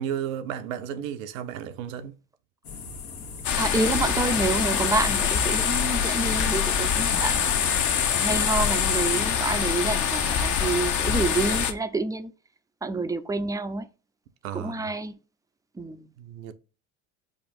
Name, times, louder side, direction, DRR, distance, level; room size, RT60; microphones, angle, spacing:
voice 1, 0.0-2.1 7.1-7.3 14.4-14.9 16.2-16.5, right 9 dB, 85° right, 0.7 m, -33 dB
sound 1, 2.6-9.0, left 5 dB, 80° left, 1.3 m, -39 dB
sound 2, 3.4-11.7, left 7 dB, 50° left, 0.8 m, -24 dB
voice 2, 3.6-7.6 8.2-12.3 12.8-13.9 14.5-15.2 15.8-16.1, right 3 dB, 10° right, 0.4 m, -28 dB
4.9 x 2.4 x 4.2 m
hypercardioid pair, 80°, 39 cm